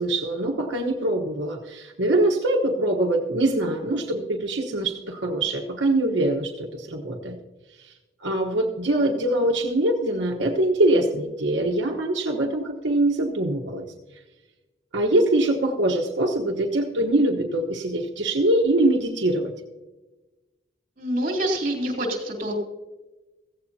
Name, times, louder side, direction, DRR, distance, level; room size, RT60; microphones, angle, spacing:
voice 1, 0.0-7.4 7.8-7.9 8.2-13.9 14.9-19.5, right 1 dB, 90° right, 1 dB, 1.1 m, -23 dB
voice 2, 21.0-22.6, right 1 dB, 45° right, 1 dB, 3.3 m, -26 dB
16.0 x 15.5 x 2.8 m, 1.1 s
head